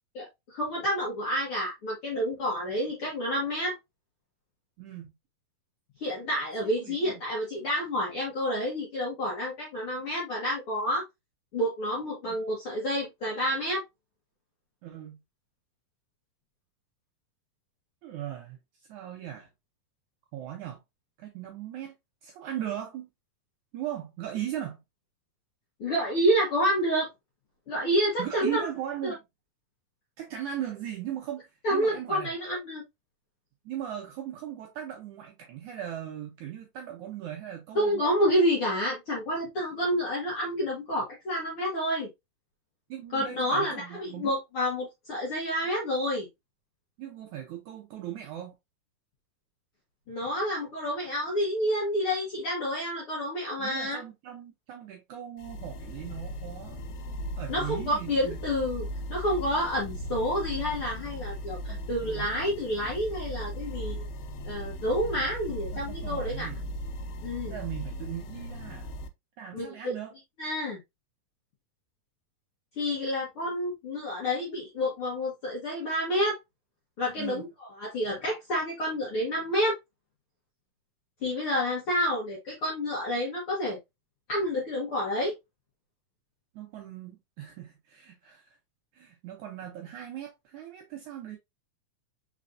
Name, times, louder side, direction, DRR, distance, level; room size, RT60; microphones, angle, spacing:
voice 1, 0.1-3.7 6.0-11.0 11.5-13.8 25.8-27.1 27.7-28.6 29.0-29.1 31.6-32.8 37.7-42.1 43.1-46.3 50.1-54.0 57.5-64.0 64.4-66.5 67.2-67.5 69.5-69.9 70.4-70.8 72.8-76.4 77.0-79.7 81.2-83.8 84.3-85.3, equal, 60° left, 1.4 m, -29 dB
voice 2, 4.8-5.1 6.8-7.2 12.2-12.4 14.8-15.2 18.0-18.6 18.9-19.5 20.3-20.8 21.2-21.9 22.2-23.1 23.7-24.8 28.2-29.2 30.2-32.3 33.7-38.0 42.9-44.3 47.0-48.6 53.6-56.9 57.4-58.4 61.7-62.3 65.5-66.6 67.5-68.9 69.4-70.1 77.2-77.5 86.5-88.6 88.9-91.4, right 11 dB, 75° right, 1.8 m, -38 dB
sound 1, 55.4-69.1, equal, 90° left, 2.5 m, -37 dB
5.1 x 4.1 x 2.5 m
omnidirectional pair, 4.2 m